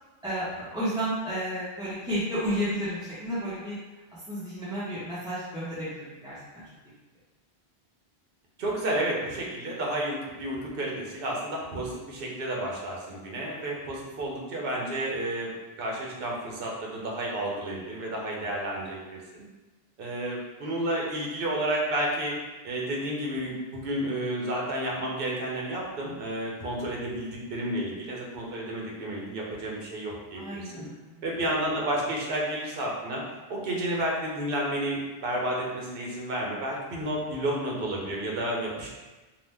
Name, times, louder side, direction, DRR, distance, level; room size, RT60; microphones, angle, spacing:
voice 1, 0.2-3.8 4.3-6.6 30.3-31.1, equal, 5° right, -12 dB, 0.6 m, -32 dB
voice 2, 8.6-15.5 15.8-19.2 20.0-22.3 22.6-30.9 31.2-33.2 33.5-38.9, right 1 dB, 65° right, -2 dB, 0.9 m, -31 dB
2.8 x 2.1 x 3.3 m, 1.2 s
omnidirectional pair, 1.0 m